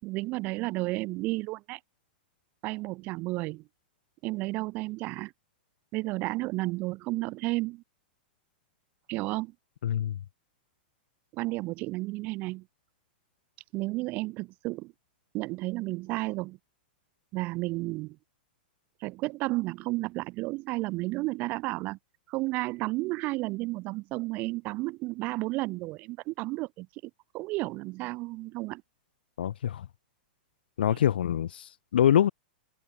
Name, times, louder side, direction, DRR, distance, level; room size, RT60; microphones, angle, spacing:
voice 1, 0.0-1.8 2.6-3.6 4.2-5.3 5.9-7.8 9.1-9.5 11.3-12.6 13.7-14.9 15.3-16.6 17.3-18.2 19.0-22.0 22.3-28.8 30.9-31.0, right 21 dB, 35° right, 5.5 m, -32 dB
voice 2, 9.8-10.2 29.4-29.9 30.8-32.3, left 10 dB, 85° left, 3.0 m, -25 dB
supercardioid pair, 155°, 5 cm